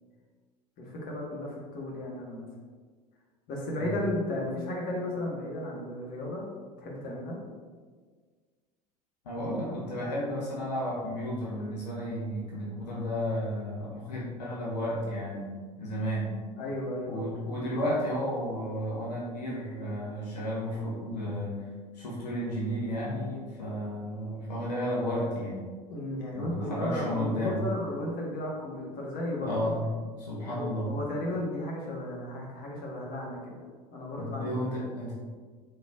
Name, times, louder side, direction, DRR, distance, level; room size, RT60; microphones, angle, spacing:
voice 1, 0.8-2.4 3.5-6.5 6.8-7.4 16.6-17.2 17.6-17.7 25.9-29.5 30.5-33.5 33.9-34.6, left 1 dB, 45° left, -3 dB, 1.3 m, -34 dB
voice 2, 9.2-15.5 15.8-16.3 17.1-21.6 21.9-25.7 26.3-27.6 29.4-29.9 30.2-30.9 34.2-35.1, equal, 70° left, -5 dB, 1.1 m, -32 dB
5.2 x 4.0 x 2.4 m, 1.5 s
figure-of-eight pair, 75°, 21 cm